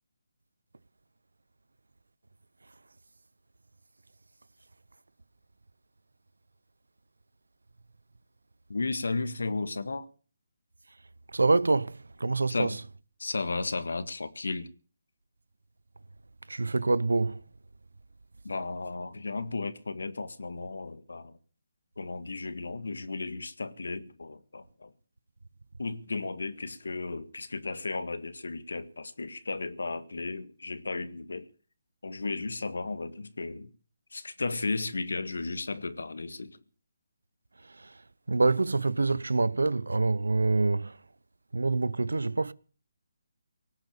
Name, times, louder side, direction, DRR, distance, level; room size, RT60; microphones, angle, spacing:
voice 1, 8.7-10.1 12.5-12.8 13.2-14.7 18.4-21.4 22.0-24.9 25.8-31.5 32.0-33.7 34.1-36.6, left 3 dB, 80° left, 1.8 m, -34 dB
voice 2, 11.3-12.7 16.5-17.4 37.8-37.9 38.3-41.0 41.5-42.5, right 3 dB, 85° right, 0.8 m, -26 dB
18.5 x 8.3 x 8.7 m
figure-of-eight pair, 155°, 0 cm